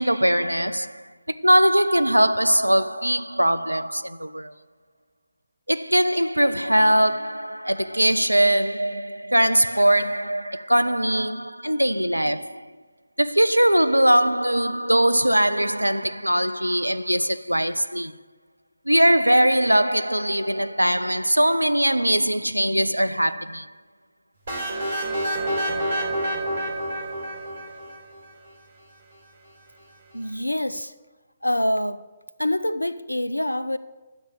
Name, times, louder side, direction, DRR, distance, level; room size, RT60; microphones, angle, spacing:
voice 1, 0.0-4.5 5.7-12.7 13.2-18.2 18.9-23.7, right 1 dB, 85° right, 0.5 m, -21 dB
sound 1, 24.5-28.2, right 1 dB, 55° right, 4.5 m, -28 dB
voice 2, 30.1-30.9 31.4-32.1 32.4-33.8, left 1 dB, 85° left, 0.6 m, -25 dB
12.5 x 8.2 x 8.0 m
figure-of-eight pair, 130°, 0 cm